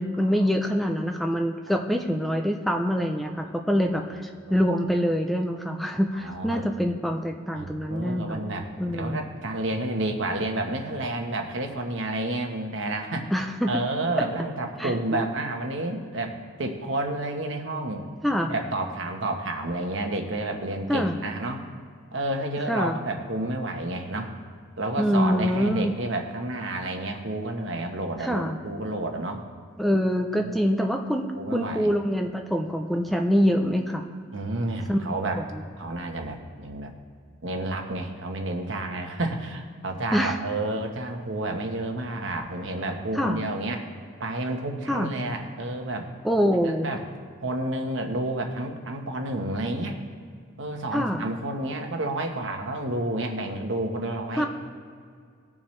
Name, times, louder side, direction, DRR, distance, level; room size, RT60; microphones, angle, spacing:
voice 1, 0.0-8.4 8.8-9.2 13.3-13.8 14.8-15.2 18.2-18.5 20.9-21.2 22.7-23.0 25.0-25.9 28.2-28.6 29.8-34.0 34.9-35.6 40.1-40.4 43.1-43.4 44.9-45.1 46.2-46.9 50.9-51.2 54.3-54.4, equal, ahead, 3 dB, 0.5 m, -25 dB
voice 2, 6.1-6.7 7.5-18.1 18.4-21.6 22.1-24.3 24.8-29.4 30.4-30.5 31.3-31.9 34.3-35.4 35.8-36.9 37.4-43.9 44.2-46.1 46.8-47.0 47.4-50.0 50.6-54.5, right 2 dB, 65° right, 4 dB, 1.2 m, -30 dB
19.0 x 7.2 x 3.2 m, 2.1 s
head